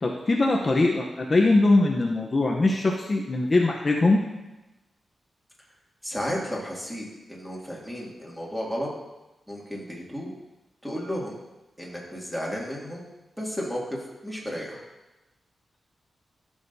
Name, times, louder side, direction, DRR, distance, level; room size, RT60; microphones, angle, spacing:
voice 1, 0.0-4.2, left 2 dB, 35° left, -1 dB, 0.8 m, -21 dB
voice 2, 6.0-8.9 9.5-10.3 10.8-11.3 11.8-13.0 13.4-13.8 14.2-14.8, equal, 5° right, -4 dB, 2.3 m, -33 dB
14.0 x 6.4 x 2.7 m, 1.0 s
wide cardioid pair, 100°, 0 cm